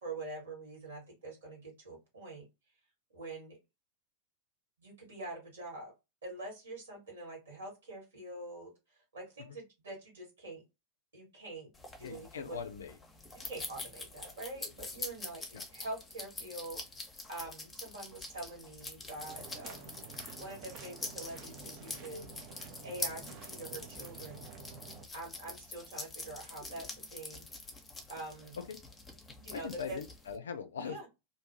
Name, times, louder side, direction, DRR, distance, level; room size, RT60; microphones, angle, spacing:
voice 1, 0.0-2.4 3.1-3.6 4.8-5.9 6.2-8.7 9.1-10.6 11.1-11.7 12.0-12.6 13.3-20.0 20.4-22.4 22.8-24.5 25.1-27.4 28.1-28.6 29.4-30.0 30.8-31.1, right 2 dB, 70° right, 1.6 m, -45 dB
sound 1, 11.7-30.4, left 2 dB, 15° left, 0.7 m, -45 dB
voice 2, 12.0-12.9 15.5-15.6 28.6-28.8 29.5-31.1, left 7 dB, 65° left, 0.3 m, -41 dB
sound 2, 19.2-25.1, right 5 dB, 40° right, 0.6 m, -50 dB
2.6 x 2.3 x 2.7 m
figure-of-eight pair, 90°, 0 cm